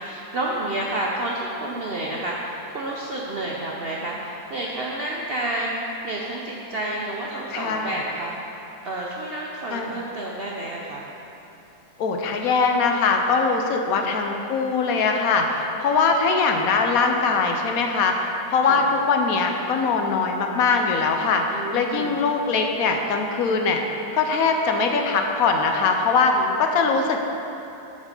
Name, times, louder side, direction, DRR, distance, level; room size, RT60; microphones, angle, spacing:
voice 1, 0.0-5.7 6.0-8.4 8.8-11.1 13.9-14.2 18.6-18.8 21.5-22.2 26.3-26.6, right 1 dB, 60° right, -3 dB, 0.6 m, -30 dB
voice 2, 7.5-8.0 9.7-9.9 12.0-23.8 24.1-27.3, left 4 dB, 70° left, 3 dB, 1.0 m, -22 dB
8.1 x 5.2 x 5.2 m, 2.9 s
omnidirectional pair, 1.7 m